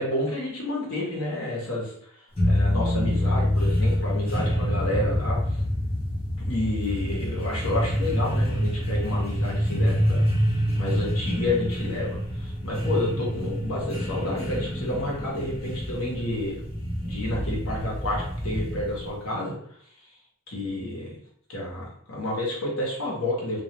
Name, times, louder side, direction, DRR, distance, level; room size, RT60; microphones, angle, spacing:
voice 1, 0.0-5.6 6.4-10.2 10.8-16.6 17.0-19.6 20.5-21.2 21.5-23.6, left 1 dB, 75° left, -4 dB, 1.0 m, -30 dB
sound 1, 2.4-19.2, equal, 25° left, 0.7 m, -26 dB
2.4 x 2.2 x 2.9 m, 0.65 s
head